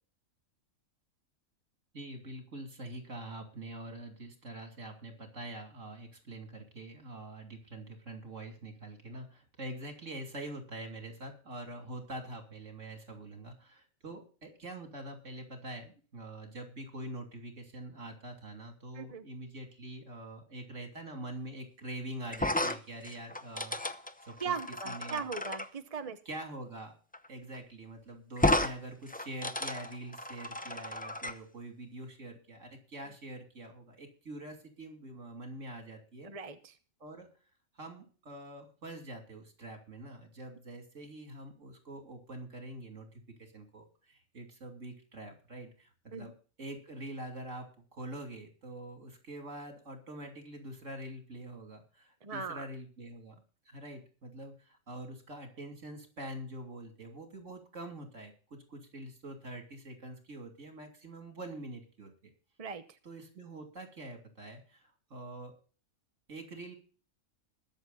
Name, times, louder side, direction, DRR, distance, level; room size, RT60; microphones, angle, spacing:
voice 1, 1.9-23.8 24.2-24.5 24.8-25.2 26.2-27.0 27.3-36.3 37.0-37.3 37.7-46.3 46.6-62.3 63.0-65.5 66.3-66.7, right 1 dB, 60° right, 4 dB, 3.3 m, -45 dB
sound 1, 22.3-25.7 27.1-27.3 27.5-27.6 28.4-28.7 29.1-31.3, left 1 dB, 10° left, 0.5 m, -33 dB
voice 2, 24.4-26.2 36.2-36.6 46.1-46.3 52.2-52.6 62.6-62.8, right 5 dB, 30° right, 9 dB, 0.9 m, -38 dB
21.5 x 7.3 x 4.1 m, 0.38 s
omnidirectional pair, 1.4 m